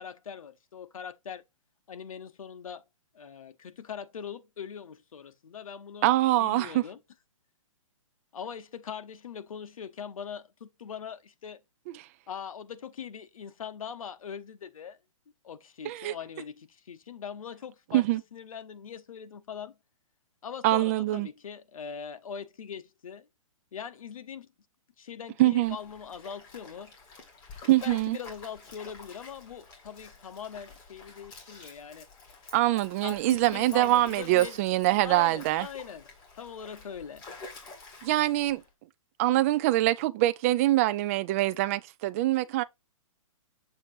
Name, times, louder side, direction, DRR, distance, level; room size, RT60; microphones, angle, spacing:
voice 1, 0.0-1.4 1.9-2.8 3.1-6.1 6.3-7.0 8.3-11.6 12.3-15.0 15.4-18.0 18.3-19.8 20.4-23.3 23.7-24.5 25.0-26.9 27.7-32.1 33.0-34.6 35.0-36.0 36.4-37.2, left 7 dB, 85° left, 0.9 m, -41 dB
voice 2, 6.0-6.8 11.9-12.1 15.8-16.1 17.9-18.2 20.6-21.3 25.4-25.8 27.7-28.2 32.5-35.7 38.0-38.6 39.2-42.6, right 16 dB, 25° right, 0.4 m, -24 dB
Stream, 25.6-38.7, left 3 dB, 20° left, 1.8 m, -49 dB
6.7 x 2.9 x 5.3 m
hypercardioid pair, 155°, 17 cm